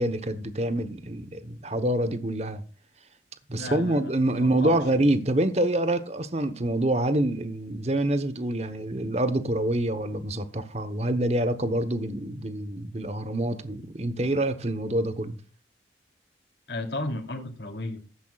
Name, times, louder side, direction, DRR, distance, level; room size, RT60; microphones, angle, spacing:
voice 1, 0.0-2.6 3.5-15.4, right 1 dB, 35° right, 1.0 m, -26 dB
voice 2, 3.5-4.8 16.7-18.0, left 2 dB, 65° left, 2.9 m, -34 dB
15.0 x 12.5 x 2.4 m
head